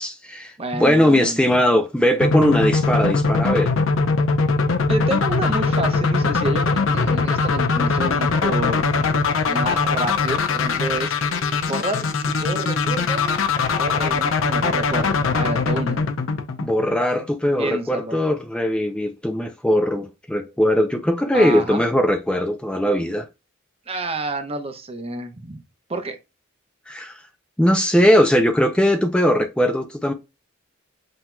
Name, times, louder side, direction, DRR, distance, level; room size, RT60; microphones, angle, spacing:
voice 1, 0.0-3.7 16.6-23.3 26.9-27.2 27.6-30.1, equal, 5° left, 0.4 m, -19 dB
voice 2, 0.6-1.6 4.9-9.0 9.5-11.2 11.7-13.2 13.8-16.0 17.6-18.2 21.3-21.8 23.9-25.6 25.9-26.2, right 2 dB, 30° right, 0.7 m, -29 dB
sound 1, 2.2-17.1, left 4 dB, 80° left, 0.6 m, -21 dB
sound 2, 11.1-14.6, equal, 50° left, 1.8 m, -44 dB
7.7 x 2.8 x 2.2 m
head